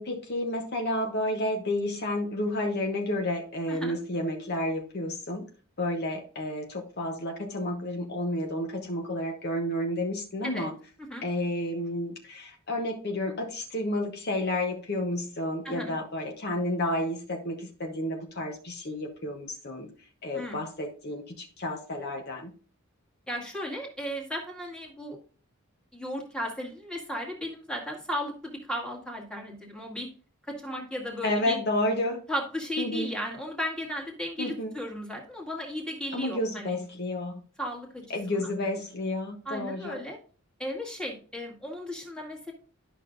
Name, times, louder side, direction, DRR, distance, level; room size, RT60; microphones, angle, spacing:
voice 1, 0.0-5.5 5.8-10.8 11.2-22.5 31.2-32.2 32.8-33.1 34.4-34.7 36.1-37.4 38.1-40.0, left 1 dB, 50° left, 2 dB, 1.0 m, -31 dB
voice 2, 15.6-16.0 20.3-20.6 23.3-25.2 25.9-30.1 30.5-31.6 32.3-36.7 37.6-38.4 39.5-40.2 40.6-42.5, equal, 5° left, -1 dB, 1.9 m, -35 dB
11.5 x 6.1 x 2.6 m, 0.40 s
head